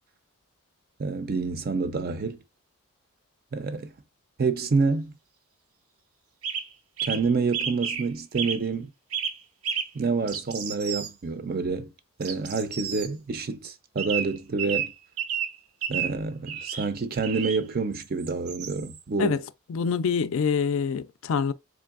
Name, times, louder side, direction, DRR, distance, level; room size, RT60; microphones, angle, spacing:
voice 1, 1.0-2.4 3.5-3.9 4.4-5.2 7.1-8.9 9.9-11.9 12.2-14.9 15.9-19.4, right 4 dB, 45° right, 0.4 m, -28 dB
sound 1, 6.4-6.7 7.0-7.3 7.5-8.1 8.3-8.6 9.1-9.4 9.6-9.9 10.3-11.1 12.2-13.1 14.0-15.6 15.8-16.2 16.5-16.9 17.2-17.6 18.0-19.0, right 7 dB, 85° right, 0.6 m, -31 dB
voice 2, 19.2-21.5, left 6 dB, 70° left, 0.4 m, -26 dB
3.7 x 3.2 x 2.4 m
head